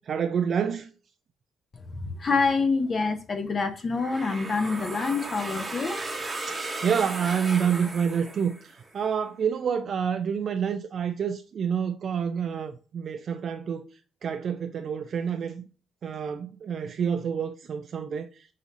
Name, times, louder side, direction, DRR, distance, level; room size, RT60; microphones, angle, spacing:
voice 1, 0.1-0.9 6.5-13.9 14.2-15.7 16.0-18.5, right 7 dB, 50° right, 0.3 m, -28 dB
voice 2, 2.0-6.0, left 4 dB, 35° left, 0.6 m, -26 dB
sound 1, 4.0-8.9, right 2 dB, 20° right, 0.9 m, -35 dB
6.1 x 2.7 x 2.6 m
cardioid pair, 105°, 0 cm